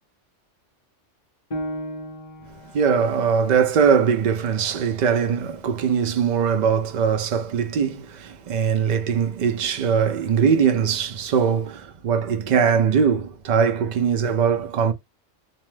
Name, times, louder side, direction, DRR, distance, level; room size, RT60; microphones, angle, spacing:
Piano, 1.5-6.7 7.2-7.3 7.9-8.4, equal, 30° left, 0.7 m, -38 dB
voice 1, 2.7-14.9, right 6 dB, 65° right, 0.4 m, -21 dB
2.7 x 2.2 x 3.1 m
omnidirectional pair, 1.2 m